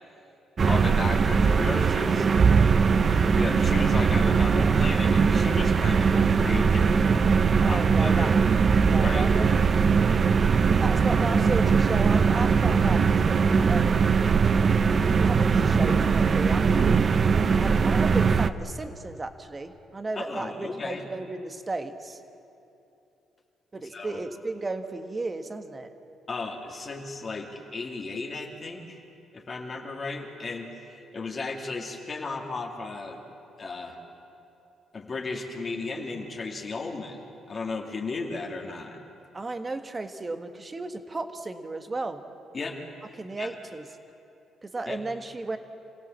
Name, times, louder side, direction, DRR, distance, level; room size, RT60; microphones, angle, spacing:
sound 1, 0.6-18.5, right 5 dB, 45° right, 0.7 m, -21 dB
voice 1, 0.7-2.3 3.3-7.0 7.6-8.3 8.9-9.3 20.1-21.0 23.9-24.2 26.3-29.0 29.3-30.7 31.1-33.2 33.6-34.0 34.9-37.2 37.5-39.0 42.5-42.8 43.4-43.5 44.9-45.0, left 3 dB, 40° left, 0 dB, 2.6 m, -34 dB
voice 2, 7.6-8.5 8.8-9.5 10.0-10.1 10.4-14.0 15.2-16.9 17.6-22.2 23.7-25.9 39.3-42.2 43.2-43.9 44.6-45.6, right 3 dB, 25° right, 8 dB, 1.5 m, -34 dB
27.0 x 16.5 x 7.4 m, 2.8 s
cardioid pair, 90°, 0 cm